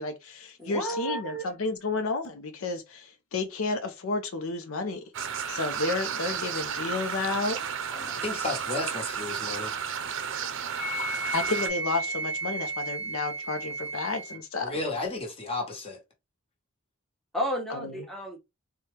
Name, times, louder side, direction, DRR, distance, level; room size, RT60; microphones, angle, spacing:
voice 1, 0.0-5.0 5.5-7.6 11.3-14.7 17.7-17.9, left 3 dB, 70° left, 0.6 m, -31 dB
voice 2, 0.6-1.5 7.9-8.1 17.3-18.4, right 1 dB, ahead, 0.9 m, -32 dB
sound 1, 5.1-11.7, right 7 dB, 65° right, 0.6 m, -33 dB
voice 3, 8.2-9.8 14.6-16.0, left 3 dB, 25° left, 1.2 m, -33 dB
Wind instrument woodwind instrument, 10.8-14.4, right 2 dB, 90° left, 1.0 m, -33 dB
4.3 x 2.3 x 3.2 m
head